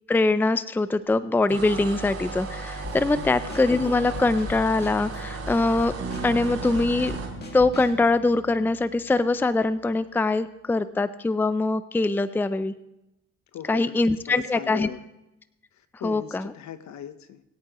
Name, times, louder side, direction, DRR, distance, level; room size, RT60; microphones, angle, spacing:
voice 1, 0.1-5.9 6.2-7.1 7.5-12.7 13.7-14.9 16.0-16.5, left 3 dB, 5° left, 14 dB, 0.5 m, -23 dB
sound 1, 1.5-7.3, right 3 dB, 60° right, 4.2 m, -35 dB
Drum kit / Snare drum, 2.8-8.1, left 3 dB, 35° left, 2.0 m, -41 dB
Bass guitar, 6.0-9.7, right 4 dB, 40° right, 2.4 m, -39 dB
voice 2, 13.5-14.0 14.2-15.0 15.7-17.4, left 9 dB, 70° left, 11 dB, 1.0 m, -39 dB
22.0 x 8.7 x 3.0 m, 0.90 s
cardioid pair, 90°, 30 cm